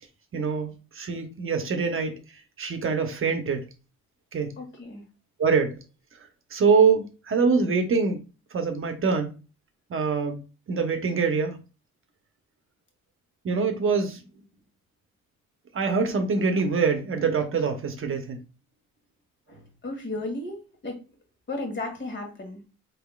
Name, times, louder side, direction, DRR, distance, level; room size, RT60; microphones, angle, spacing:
voice 1, 0.3-0.7 0.9-2.2 2.6-3.6 4.3-4.5 5.4-5.8 6.5-8.2 8.5-9.3 9.9-10.4 10.7-11.6 13.4-14.2 15.7-18.4, right 5 dB, 45° right, 0.9 m, -24 dB
voice 2, 4.6-5.0 19.5-21.0 21.5-22.6, left 2 dB, 40° left, 1.7 m, -34 dB
4.2 x 3.6 x 2.3 m
cardioid pair, 90°, 30 cm